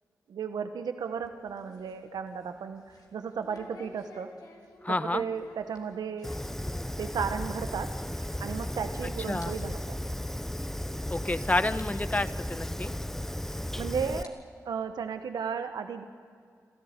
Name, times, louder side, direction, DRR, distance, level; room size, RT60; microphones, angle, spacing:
voice 1, 0.3-4.3 4.9-6.3 7.0-7.9 8.4-10.0 13.5-14.3 14.6-16.0, right 6 dB, 80° right, 8 dB, 1.0 m, -34 dB
sound 1, 1.0-8.9 9.2-9.5 9.8-9.9 10.6-10.7 11.2-11.3 11.8-11.9 13.2-13.3 14.0-15.4, left 2 dB, 70° left, 3.5 m, -53 dB
voice 2, 4.8-5.2 9.3-9.5 11.1-12.9, left 2 dB, 20° left, 13 dB, 1.1 m, -29 dB
Fire, 6.2-14.2, left 1 dB, 5° left, 0.5 m, -35 dB
26.5 x 14.0 x 8.9 m, 2.3 s
supercardioid pair, 40°, 7 cm